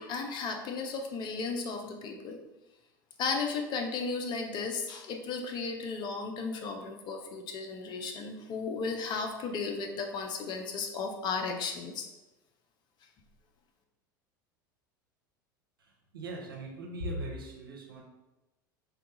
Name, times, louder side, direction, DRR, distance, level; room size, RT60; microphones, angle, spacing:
voice 1, 0.0-2.4 3.2-12.1, left 4 dB, 40° left, 3 dB, 0.5 m, -35 dB
voice 2, 16.1-18.0, right 1 dB, 85° right, -1 dB, 0.7 m, -39 dB
3.6 x 2.2 x 2.9 m, 1.0 s
hypercardioid pair, 80°, 11 cm